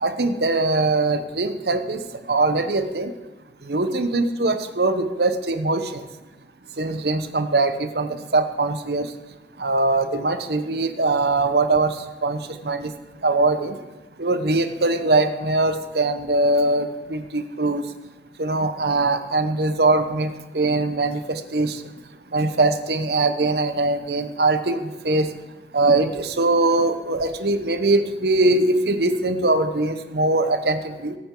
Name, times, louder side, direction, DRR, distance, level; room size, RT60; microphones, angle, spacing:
voice 1, 0.0-2.0 2.3-3.1 3.7-6.0 6.8-9.1 9.6-11.9 12.2-12.4 12.6-12.9 13.2-13.7 14.2-17.8 18.4-21.7 22.3-25.3 25.7-31.2, right 2 dB, 65° right, 9 dB, 0.9 m, -21 dB
18.5 x 8.7 x 3.8 m, 1.1 s
head